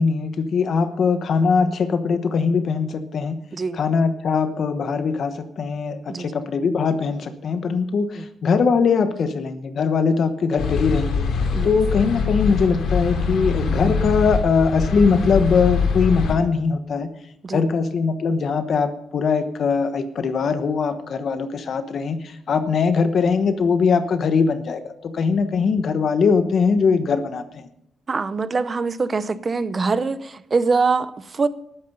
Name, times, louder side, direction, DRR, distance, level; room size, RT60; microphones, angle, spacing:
voice 1, 0.0-3.4 3.8-11.3 11.6-17.1 17.5-27.7, left 5 dB, 50° left, 9 dB, 1.1 m, -21 dB
sound 1, 10.6-16.3, left 5 dB, 70° left, 3.0 m, -23 dB
voice 2, 28.1-31.5, right 4 dB, 25° right, 14 dB, 0.7 m, -23 dB
14.0 x 11.5 x 5.5 m, 0.74 s
cardioid pair, 160°, 0 cm